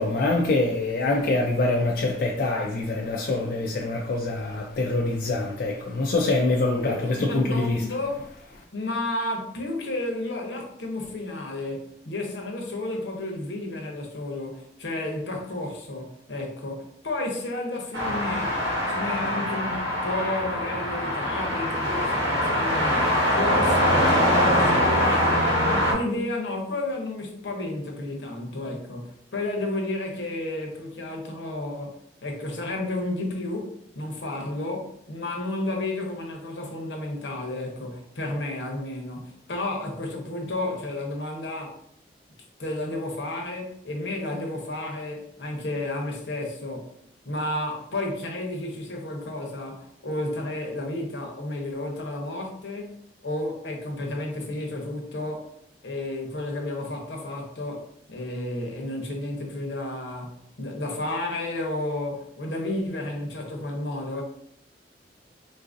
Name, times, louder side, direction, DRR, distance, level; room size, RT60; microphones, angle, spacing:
voice 1, 0.0-7.8, left 2 dB, 55° left, 0.4 m, -25 dB
voice 2, 6.7-8.2 8.7-18.5 18.9-23.0 23.3-25.2 25.6-41.8 42.6-46.9 47.2-52.9 53.2-55.5 55.8-64.2, left 2 dB, 80° left, 0.8 m, -32 dB
sound 1, 17.9-25.9, equal, 80° right, 1.1 m, -23 dB
3.8 x 2.5 x 2.5 m
head